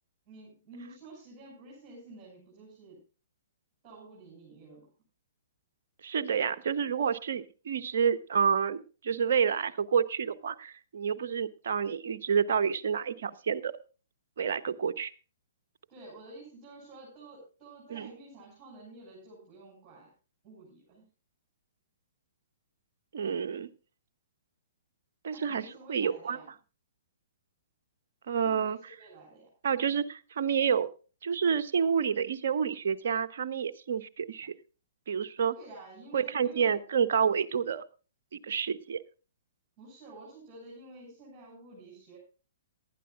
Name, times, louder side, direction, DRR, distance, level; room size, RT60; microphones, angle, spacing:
voice 1, 0.3-3.0 3.8-4.9 15.9-20.1 20.4-21.0 25.3-26.5 28.4-29.5 35.5-36.8 39.8-42.2, right 2 dB, 20° right, -3 dB, 6.9 m, -50 dB
voice 2, 6.0-13.7 14.4-15.1 17.9-18.1 23.1-23.7 25.2-25.6 25.9-26.4 28.3-28.8 29.6-30.9 31.2-34.5 35.1-35.5 36.1-37.8 38.5-39.0, right 7 dB, 50° right, 9 dB, 0.9 m, -29 dB
18.5 x 12.0 x 2.5 m, 0.34 s
figure-of-eight pair, 115°, 0 cm